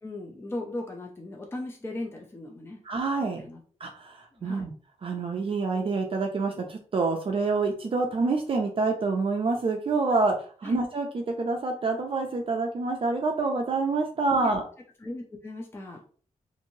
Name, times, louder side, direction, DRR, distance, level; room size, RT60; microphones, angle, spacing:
voice 1, 0.0-2.8 3.2-3.6 4.4-4.7 10.6-10.8 14.4-14.5 15.0-16.0, left 2 dB, 20° left, 1 dB, 0.4 m, -37 dB
voice 2, 2.9-3.4 3.8-4.7 5.0-14.6, right 3 dB, 45° right, 3 dB, 0.4 m, -27 dB
2.9 x 2.6 x 2.7 m, 0.44 s
wide cardioid pair, 160°, 13 cm